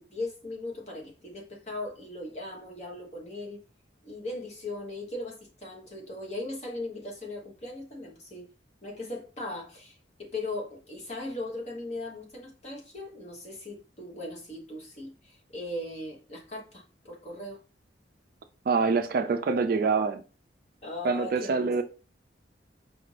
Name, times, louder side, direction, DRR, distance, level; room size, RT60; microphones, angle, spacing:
voice 1, 0.0-3.6 4.0-8.5 8.8-17.6 20.8-21.8, left 2 dB, 35° left, 1.1 m, -38 dB
voice 2, 18.7-20.2 21.0-21.8, right 4 dB, 50° right, 0.3 m, -25 dB
5.0 x 2.5 x 3.2 m
head